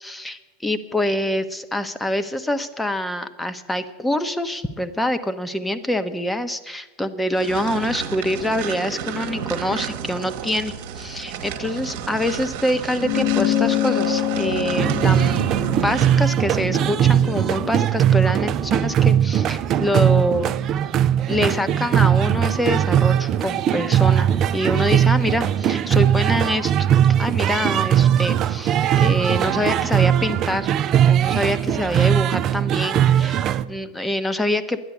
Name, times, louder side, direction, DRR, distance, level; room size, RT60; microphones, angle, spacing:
voice 1, 0.0-20.5 21.3-26.7 27.2-30.7 31.0-34.8, left 1 dB, 10° left, 11 dB, 0.9 m, -25 dB
sound 1, 7.3-16.3, right 8 dB, 60° right, 1.2 m, -31 dB
sound 2, 13.0-17.8, left 12 dB, 60° left, 1.4 m, -26 dB
sound 3, 14.8-33.6, right 10 dB, 40° right, 0.5 m, -19 dB
10.5 x 9.8 x 8.5 m, 1.2 s
hypercardioid pair, 85°, 0 cm